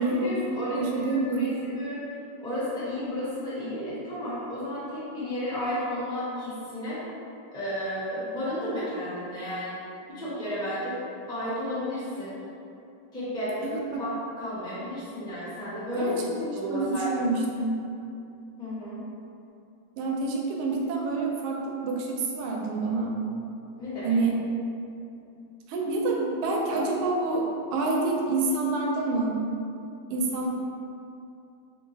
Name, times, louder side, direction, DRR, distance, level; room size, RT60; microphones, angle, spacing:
voice 1, 0.0-2.0 2.4-7.0 7.5-9.8 10.1-11.0 11.3-12.3 13.1-16.2 16.5-17.1 18.6-19.0 23.8-24.2, equal, 5° left, -11 dB, 0.3 m, -32 dB
voice 2, 0.8-1.6 13.6-13.7 16.0-17.7 20.0-23.1 24.0-24.3 25.7-29.4 30.1-30.5, right 3 dB, 80° right, -1 dB, 1.4 m, -27 dB
3.7 x 2.7 x 3.9 m, 2.6 s
omnidirectional pair, 2.4 m